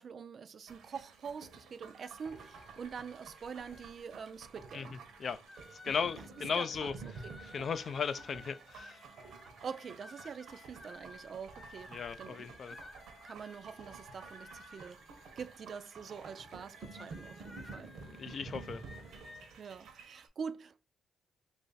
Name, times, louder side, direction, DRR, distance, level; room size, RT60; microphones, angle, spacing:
voice 1, 0.0-5.0 6.2-6.3 6.5-7.4 9.6-12.5 13.2-15.0 15.4-17.9 19.6-20.8, right 6 dB, 50° right, 0.3 m, -45 dB
sound 1, 0.7-20.3, right 4 dB, 70° right, 0.8 m, -51 dB
sound 2, 2.0-4.5 5.1-5.2 5.5-19.5, left 2 dB, 20° left, 1.0 m, -55 dB
voice 2, 5.8-6.9 7.5-9.0 11.9-12.7 18.0-18.8, left 6 dB, 50° left, 0.3 m, -36 dB
3.1 x 2.5 x 3.9 m
cardioid pair, 90°, 0 cm